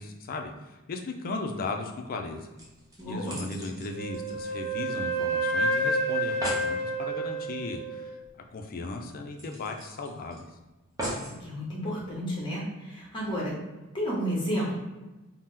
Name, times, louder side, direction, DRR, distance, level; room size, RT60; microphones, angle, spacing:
voice 1, 0.0-2.5 3.1-8.2 8.5-10.4, left 3 dB, 40° left, 4 dB, 0.4 m, -36 dB
sound 1, 2.6-5.2 5.5-5.6 5.9-6.0 6.2-6.7 8.2-8.3 8.7-8.8 9.4-10.4 11.0-11.4 12.1-12.2, right 1 dB, 15° right, 0.6 m, -38 dB
voice 2, 3.0-3.4 11.2-13.6 13.9-14.7, equal, 20° left, -5 dB, 0.8 m, -31 dB
Wind instrument woodwind instrument, 3.9-8.1, right 1 dB, 60° right, 0.9 m, -29 dB
2.8 x 2.0 x 3.6 m, 1.1 s
head